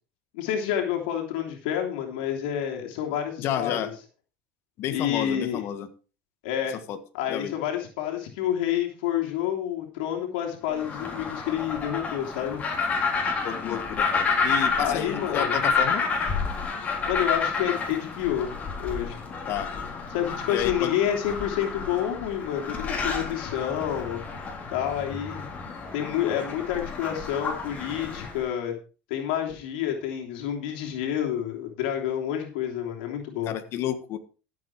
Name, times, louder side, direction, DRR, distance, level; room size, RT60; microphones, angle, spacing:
voice 1, 0.3-3.9 4.9-5.6 6.4-6.8 7.1-12.6 14.8-15.6 17.1-18.5 18.8-19.2 20.1-24.2 24.7-25.5 25.9-28.7 29.1-33.5, left 10 dB, 90° left, 2 dB, 3.1 m, -29 dB
voice 2, 3.4-3.9 4.8-5.9 6.9-7.0 7.3-7.6 13.4-16.0 19.5-19.7 20.5-20.9 33.5-34.2, left 10 dB, 55° left, 8 dB, 1.6 m, -31 dB
sound 1, 10.7-28.4, left 4 dB, 30° left, 3.7 m, -30 dB
14.0 x 7.9 x 4.8 m, 0.35 s
supercardioid pair, 120°, 5 cm